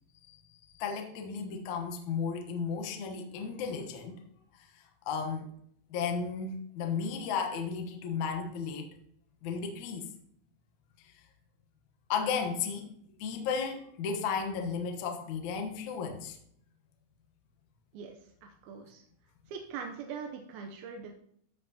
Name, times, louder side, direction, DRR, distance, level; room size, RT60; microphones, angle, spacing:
voice 1, 0.8-4.2 4.5-5.5 5.9-8.9 9.4-10.1 12.1-12.9 13.2-16.4, left 6 dB, 70° left, 4 dB, 1.8 m, -34 dB
voice 2, 17.9-19.0 19.5-21.1, right 6 dB, 80° right, 3 dB, 2.4 m, -42 dB
15.0 x 5.8 x 2.8 m, 0.67 s
omnidirectional pair, 4.9 m